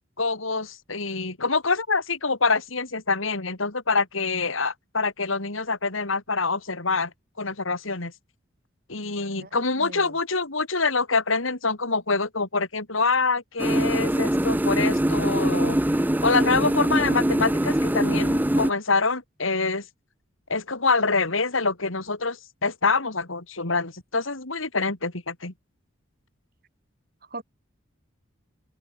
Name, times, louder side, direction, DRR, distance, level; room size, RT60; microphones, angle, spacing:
voice 1, 0.2-7.1 7.4-8.1 8.9-15.8 16.2-19.9 20.5-25.5, left 4 dB, 80° left, 3.4 m, -25 dB
voice 2, 9.7-10.2 27.3-27.4, right 2 dB, 45° right, 4.6 m, -39 dB
sound 1, 13.6-18.7, right 1 dB, 10° right, 0.5 m, -23 dB
head